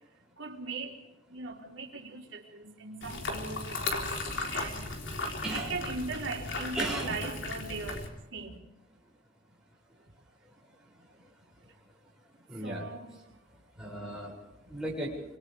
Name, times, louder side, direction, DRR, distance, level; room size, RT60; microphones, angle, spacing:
voice 1, 0.4-1.0 1.3-4.9 5.5-8.6 12.6-13.1, right 3 dB, 80° right, -1 dB, 4.2 m, -39 dB
sound 1, 3.0-8.1, left 2 dB, 75° left, 4.0 m, -36 dB
voice 2, 5.4-5.7 6.7-7.1 12.5-12.9 13.8-14.4 14.7-15.2, right 1 dB, 5° right, -4 dB, 7.0 m, -35 dB
29.5 x 26.5 x 3.5 m, 1.0 s
head